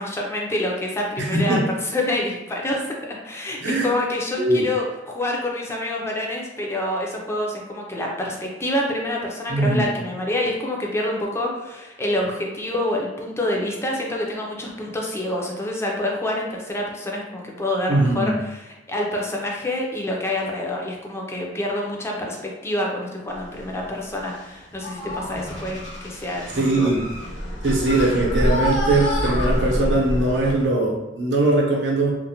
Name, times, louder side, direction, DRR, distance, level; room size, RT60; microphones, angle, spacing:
voice 1, 0.0-26.9, left 1 dB, 15° left, -1 dB, 0.4 m, -27 dB
voice 2, 1.2-1.6 3.6-3.9 4.4-4.6 9.5-9.9 17.9-18.4 26.6-27.0 27.6-32.2, right 2 dB, 75° right, -2 dB, 0.6 m, -21 dB
sound 1, 23.4-23.8 24.2-24.5 24.8-30.7, equal, 85° left, 1.1 m, -27 dB
2.5 x 2.0 x 2.8 m, 1.0 s
head